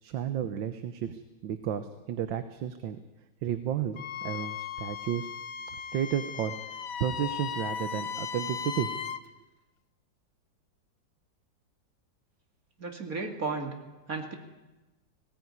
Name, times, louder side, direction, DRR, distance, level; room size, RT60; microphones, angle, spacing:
voice 1, 0.0-3.0 3.4-5.3 5.9-8.9, right 9 dB, 85° right, 9 dB, 1.7 m, -32 dB
Wind instrument woodwind instrument, 4.0-9.2, left 7 dB, 55° left, 1.2 m, -37 dB
voice 2, 12.8-13.7 14.1-14.3, right 4 dB, 50° right, 3 dB, 2.8 m, -33 dB
20.0 x 18.0 x 9.6 m, 1.1 s
omnidirectional pair, 2.0 m